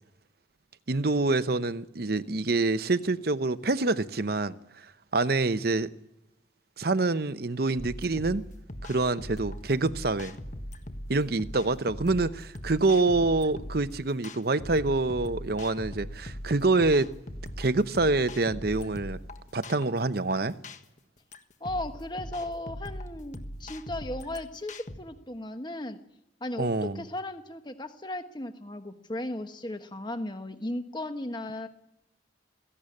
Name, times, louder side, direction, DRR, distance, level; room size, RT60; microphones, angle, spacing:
voice 1, 0.9-4.6 5.1-5.9 6.8-8.4 8.8-10.4 11.1-17.1 17.6-19.2 19.5-20.6 26.6-27.0, right 3 dB, 55° right, 0.8 m, -26 dB
sound 1, 7.8-25.0, equal, 40° left, 1.4 m, -40 dB
voice 2, 21.6-26.0 26.4-31.7, left 1 dB, 25° left, 1.2 m, -36 dB
17.0 x 15.5 x 9.9 m
head